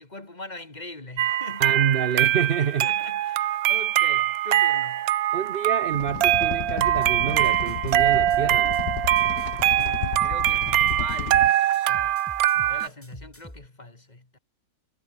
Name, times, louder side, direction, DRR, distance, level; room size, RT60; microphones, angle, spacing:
voice 1, 0.0-1.8 2.5-5.1 9.7-12.2 12.5-14.4, left 2 dB, 25° left, 2.6 m, -42 dB
sound 1, 1.2-12.9, right 12 dB, 70° right, 1.1 m, -23 dB
voice 2, 1.6-2.9 5.3-8.8, right 7 dB, 45° right, 0.7 m, -27 dB
sound 2, 5.9-11.5, left 14 dB, 80° left, 1.3 m, -33 dB
sound 3, 6.8-8.0 8.3-11.4 11.7-13.7, left 1 dB, 10° left, 3.3 m, -46 dB
omnidirectional pair, 1.7 m